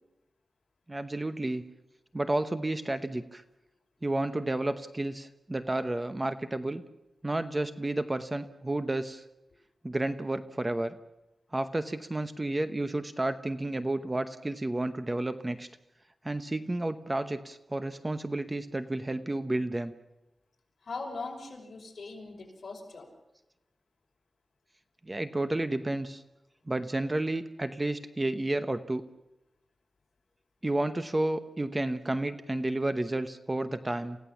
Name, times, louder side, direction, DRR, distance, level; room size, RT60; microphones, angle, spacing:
voice 1, 0.9-1.6 2.1-3.4 4.0-6.8 7.2-9.2 9.8-10.9 11.5-15.7 16.2-19.9 25.0-26.2 26.7-29.0 30.6-34.2, right 2 dB, 20° right, 10 dB, 0.9 m, -31 dB
voice 2, 20.8-23.1, left 3 dB, 55° left, 0 dB, 5.5 m, -40 dB
28.5 x 16.5 x 7.2 m, 0.93 s
wide cardioid pair, 130°, 0 cm